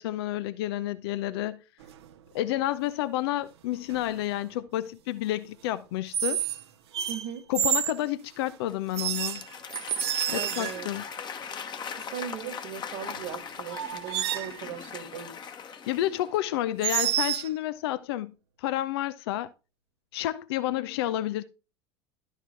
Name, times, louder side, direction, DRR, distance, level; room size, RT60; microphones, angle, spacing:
voice 1, 0.0-1.6 2.3-6.4 7.5-9.4 10.3-11.0 15.9-18.3 18.6-19.5 20.1-21.4, left 14 dB, 60° left, 0.6 m, -30 dB
sound 1, 1.8-2.1 3.9-4.2 6.1-6.6 6.9-8.0 8.9-11.0 13.2-13.3 13.7-14.6 16.8-17.5, right 10 dB, 65° right, 0.8 m, -29 dB
voice 2, 7.1-7.4 10.3-11.0 12.0-15.4, right 9 dB, 45° right, 1.6 m, -38 dB
Applause / Crowd, 8.7-16.5, left 6 dB, 30° left, 1.3 m, -40 dB
12.0 x 4.9 x 4.5 m
figure-of-eight pair, 75°, 15 cm